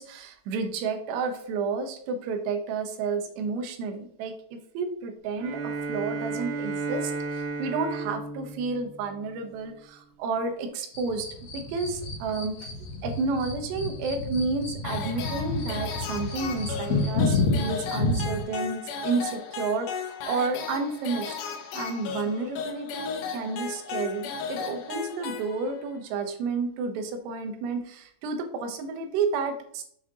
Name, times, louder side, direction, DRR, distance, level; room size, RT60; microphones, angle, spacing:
voice 1, 0.0-11.3 11.5-12.7 13.0-21.4 21.7-29.8, right 4 dB, 90° right, 6 dB, 3.1 m, -31 dB
Bowed string instrument, 5.4-9.8, right 3 dB, 75° right, 2.4 m, -34 dB
sound 1, 10.9-18.4, left 3 dB, 50° left, 2.2 m, -30 dB
sound 2, 14.8-26.0, left 6 dB, 75° left, 1.9 m, -35 dB
7.1 x 6.0 x 2.9 m, 0.65 s
omnidirectional pair, 4.7 m